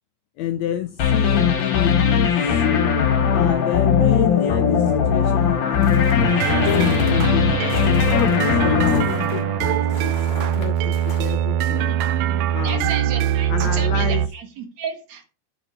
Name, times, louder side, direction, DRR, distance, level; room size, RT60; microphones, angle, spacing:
voice 1, 0.4-2.6 3.3-7.6 8.1-11.9 12.5-12.9 13.5-14.3, left 12 dB, 80° left, 9 dB, 1.6 m, -29 dB
sound 1, 1.0-10.0, left 7 dB, 45° left, 1.7 m, -19 dB
sound 2, 5.8-7.2 7.7-11.2, left 2 dB, 30° left, 2.7 m, -39 dB
sound 3, 6.2-14.3, right 10 dB, 85° right, 1.5 m, -22 dB
voice 2, 12.6-15.2, right 6 dB, 60° right, 6 dB, 2.5 m, -32 dB
7.1 x 6.5 x 5.5 m, 0.32 s
omnidirectional pair, 3.7 m